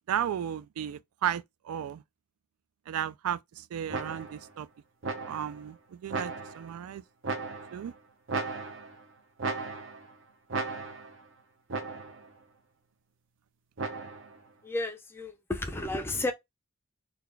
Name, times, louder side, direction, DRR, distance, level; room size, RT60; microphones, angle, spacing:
voice 1, 0.1-2.0 2.9-4.7 5.2-7.0 7.7-7.9, right 9 dB, 85° right, 0.3 m, -34 dB
sound 1, 3.9-4.5 5.0-5.6 6.1-6.8 7.2-7.9 8.3-9.0 9.4-10.1 10.5-11.2 11.7-12.3 13.8-14.4, right 4 dB, 60° right, 0.7 m, -36 dB
voice 2, 14.6-16.3, left 2 dB, 10° left, 0.4 m, -32 dB
3.9 x 2.3 x 3.3 m
head